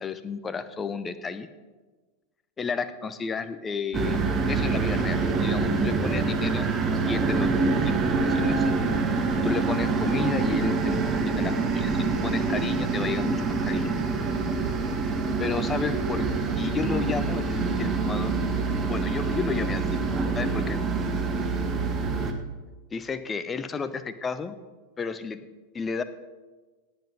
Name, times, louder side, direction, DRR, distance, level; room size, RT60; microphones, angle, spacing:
voice 1, 0.0-1.5 2.6-4.2 4.5-6.7 7.1-8.7 9.4-11.0 11.4-14.1 15.4-16.3 16.6-18.4 18.9-20.0 20.3-20.8 22.9-24.5 25.0-25.4 25.7-26.0, left 5 dB, 20° left, 12 dB, 0.8 m, -32 dB
sound 1, 3.9-22.3, right 4 dB, 25° right, 1.4 m, -26 dB
18.0 x 8.0 x 5.4 m, 1.3 s
figure-of-eight pair, 90°, 0 cm